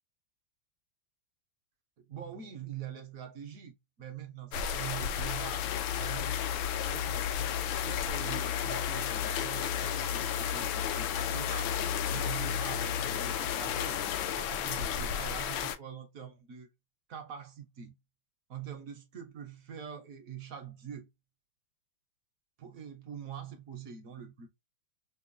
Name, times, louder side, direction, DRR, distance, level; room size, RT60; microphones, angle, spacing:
voice 1, 2.0-11.7 12.1-16.7 17.1-17.9 18.5-21.1 22.6-24.5, right 8 dB, 65° right, 0.8 m, -44 dB
sound 1, 4.5-15.8, left 9 dB, 80° left, 1.4 m, -32 dB
5.4 x 2.1 x 2.5 m
omnidirectional pair, 2.1 m